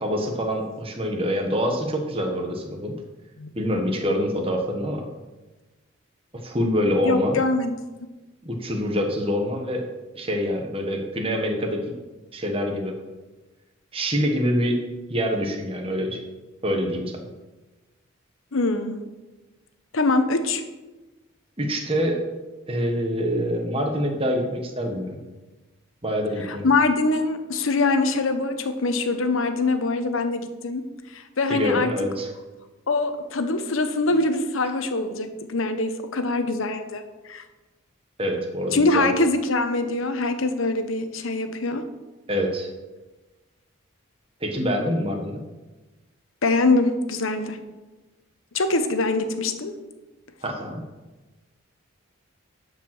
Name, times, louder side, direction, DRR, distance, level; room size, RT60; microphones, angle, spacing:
voice 1, 0.0-2.9 3.5-5.0 6.3-7.4 8.4-9.9 10.1-11.8 12.3-13.0 13.9-14.8 15.1-16.2 16.6-17.1 21.6-22.2 22.7-25.2 26.0-26.7 31.5-32.3 38.2-39.1 42.3-42.7 44.4-45.4 50.4-50.8, equal, 25° right, 2 dB, 1.3 m, -25 dB
voice 2, 7.0-7.7 18.5-19.0 19.9-20.6 26.4-30.8 31.1-31.9 32.9-37.4 38.7-41.8 46.4-47.6 48.5-49.7, left 3 dB, 75° left, 8 dB, 0.9 m, -23 dB
11.5 x 5.3 x 6.1 m, 1.2 s
head